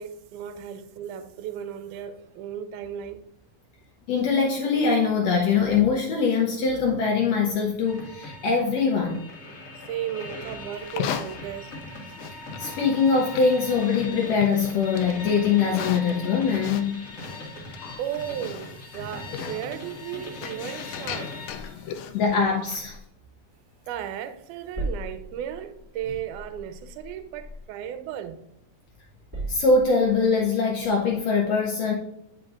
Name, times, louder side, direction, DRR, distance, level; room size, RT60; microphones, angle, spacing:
voice 1, 0.0-3.3 9.9-11.7 18.0-21.8 23.9-28.4, right 10 dB, 80° right, 2.0 m, -35 dB
voice 2, 4.1-9.2 12.6-17.0 22.1-23.0 29.5-31.9, left 5 dB, 75° left, 1.6 m, -22 dB
sound 1, 7.8-21.5, left 2 dB, 35° left, 1.3 m, -40 dB
Livestock farm animals working animals, 10.8-23.0, left 8 dB, 90° left, 1.5 m, -38 dB
sound 2, 21.5-24.1 24.4-28.6 29.0-30.3, right 2 dB, 10° right, 1.1 m, -39 dB
9.1 x 5.0 x 2.4 m
omnidirectional pair, 3.7 m